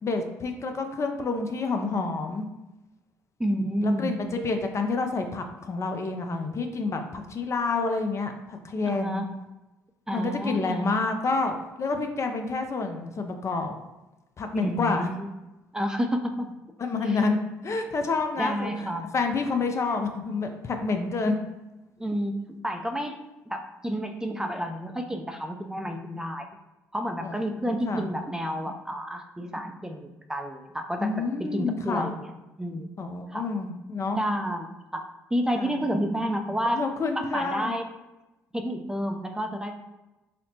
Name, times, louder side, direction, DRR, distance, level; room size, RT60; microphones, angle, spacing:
voice 1, 0.0-2.5 3.8-9.2 10.1-13.8 14.4-15.1 16.8-17.4 17.6-18.7 19.1-21.4 27.2-27.3 27.7-28.1 31.0-32.1 33.0-34.2 35.5-35.8 36.7-37.8, left 3 dB, 40° left, 5 dB, 0.5 m, -28 dB
voice 2, 3.4-4.2 8.9-9.3 10.1-10.9 14.5-15.3 15.7-16.5 17.0-17.2 18.4-19.1 22.0-26.5 26.9-32.3 32.6-32.9 33.3-33.5 34.1-35.0 35.3-36.8 37.2-37.9 38.5-39.7, equal, 10° right, 4 dB, 0.4 m, -30 dB
4.2 x 2.1 x 2.7 m, 1.0 s
hypercardioid pair, 55°, 7 cm